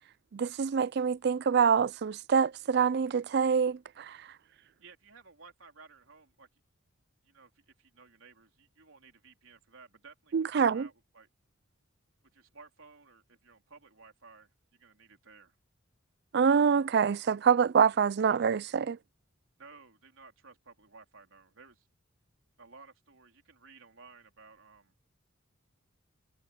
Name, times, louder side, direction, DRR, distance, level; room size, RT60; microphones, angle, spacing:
voice 1, 0.3-4.2 10.3-10.9 16.3-19.0, right 6 dB, 50° right, 0.4 m, -26 dB
voice 2, 4.8-6.5 7.2-11.3 12.3-15.6 19.6-21.9 22.6-24.9, right 4 dB, 75° right, 3.9 m, -56 dB
head